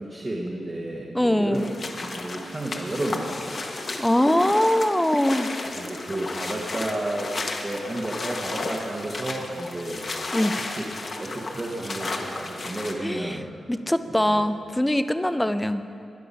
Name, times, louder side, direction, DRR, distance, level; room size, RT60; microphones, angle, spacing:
voice 1, 0.0-1.7 2.0-3.7 5.6-7.3 7.6-10.8 11.2-13.5 14.3-14.4, right 1 dB, 30° right, -4 dB, 1.3 m, -32 dB
voice 2, 1.1-1.6 4.0-5.5 10.3-10.5 13.0-13.4 13.7-15.8, left 1 dB, 5° left, 11 dB, 0.5 m, -22 dB
sound 1, 1.5-12.9, left 3 dB, 45° left, 1.1 m, -33 dB
20.0 x 6.9 x 5.6 m, 2.5 s
wide cardioid pair, 120°, 0 cm